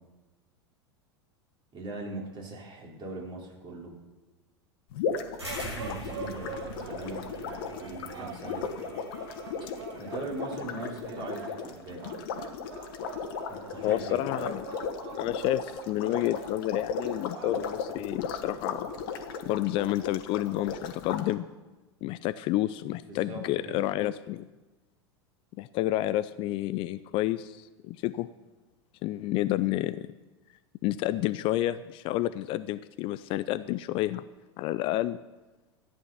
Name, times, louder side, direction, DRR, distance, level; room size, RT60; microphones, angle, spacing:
voice 1, 1.7-3.9 5.6-8.6 10.0-12.1 13.5-14.2 23.1-23.8, right 2 dB, 35° right, -2 dB, 4.1 m, -40 dB
sound 1, 4.9-21.2, left 6 dB, 55° left, 1.4 m, -36 dB
sound 2, 5.4-17.7, right 5 dB, 60° right, 1.4 m, -44 dB
sound 3, 5.4-10.3, right 1 dB, 85° right, 5.6 m, -44 dB
voice 2, 13.8-14.8 15.2-18.9 19.4-21.4 22.0-24.5 25.6-28.3 29.0-30.1 30.8-34.2 34.6-35.2, left 15 dB, 40° left, 14 dB, 0.5 m, -30 dB
14.0 x 9.6 x 5.7 m, 1.2 s
figure-of-eight pair, 85°, 14 cm